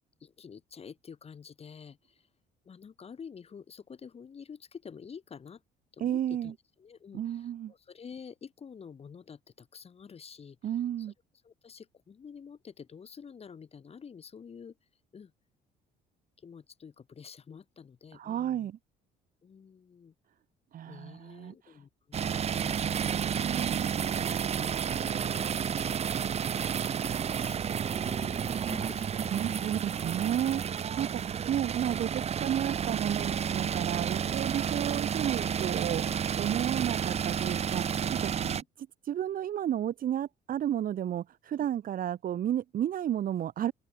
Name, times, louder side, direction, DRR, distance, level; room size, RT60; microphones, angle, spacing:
voice 1, 0.2-2.3 2.6-5.6 5.9-11.1 11.4-15.3 16.4-18.7 19.4-20.1 20.9-23.1 23.7-29.8 34.2-34.3 38.4-38.7, left 6 dB, 35° left, 7.6 m, -49 dB
voice 2, 6.0-6.5 7.1-7.7 10.6-11.1 18.1-18.8 20.7-21.5 23.1-23.9 28.6-28.7 29.3-36.1 36.4-38.3 39.0-43.7, right 10 dB, 55° right, 3.2 m, -32 dB
sound 1, 22.1-38.6, right 8 dB, 40° right, 1.1 m, -31 dB
open air
cardioid pair, 110°, 17 cm